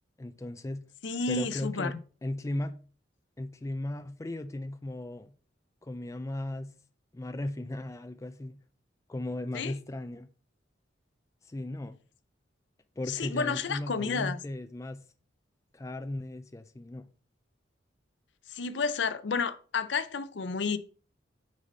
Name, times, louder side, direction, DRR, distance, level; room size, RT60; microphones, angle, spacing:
voice 1, 0.2-0.8 1.3-2.0 2.2-2.8 3.4-5.3 5.8-6.7 7.1-8.6 9.1-10.3 11.4-12.0 13.0-15.0 15.7-17.1, left 1 dB, 15° left, 0.3 m, -36 dB
voice 2, 1.0-1.9 9.5-9.8 13.1-14.4 18.5-20.8, left 4 dB, 65° left, 0.5 m, -31 dB
6.3 x 4.0 x 5.3 m
head